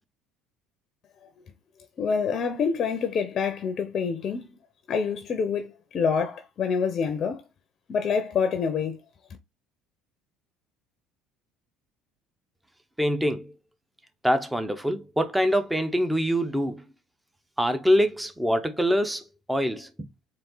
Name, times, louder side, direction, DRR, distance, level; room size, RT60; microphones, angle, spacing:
voice 1, 2.0-4.6 4.9-7.4 7.9-9.0, left 6 dB, 45° left, 0.7 m, -27 dB
voice 2, 13.0-13.5 14.2-16.8 17.6-20.1, equal, 5° right, 0.9 m, -24 dB
4.3 x 2.6 x 3.9 m
supercardioid pair, 80°, 0 cm